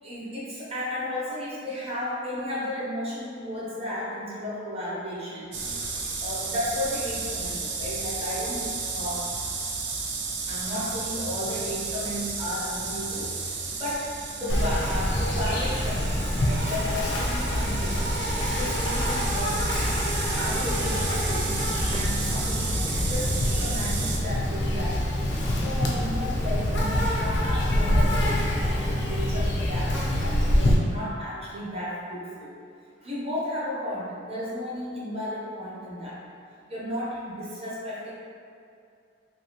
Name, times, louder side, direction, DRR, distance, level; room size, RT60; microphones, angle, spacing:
voice 1, 0.0-9.3 10.5-14.1 14.3-19.6 20.2-21.6 21.9-32.5 33.0-36.2 36.7-38.1, left 1 dB, 30° right, -7 dB, 0.7 m, -34 dB
sound 1, 5.5-24.2, right 4 dB, 65° right, 0.4 m, -33 dB
Insect, 14.5-30.7, left 1 dB, 60° left, 0.5 m, -26 dB
2.7 x 2.7 x 2.8 m, 2.4 s
head